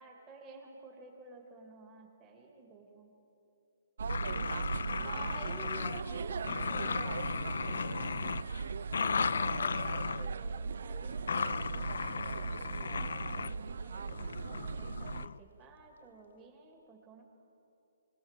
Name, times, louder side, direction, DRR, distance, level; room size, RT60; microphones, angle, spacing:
voice 1, 0.0-3.1 5.0-8.2 9.0-14.2 14.5-17.2, right 3 dB, 20° right, -1 dB, 2.4 m, -52 dB
sound 1, 4.0-15.3, right 5 dB, 70° right, 0.5 m, -38 dB
sound 2, 4.1-6.2 6.4-10.3 11.3-13.5 14.1-15.4, left 5 dB, 75° left, 0.5 m, -36 dB
23.5 x 19.5 x 7.5 m, 2.9 s
hypercardioid pair, 160°, 0 cm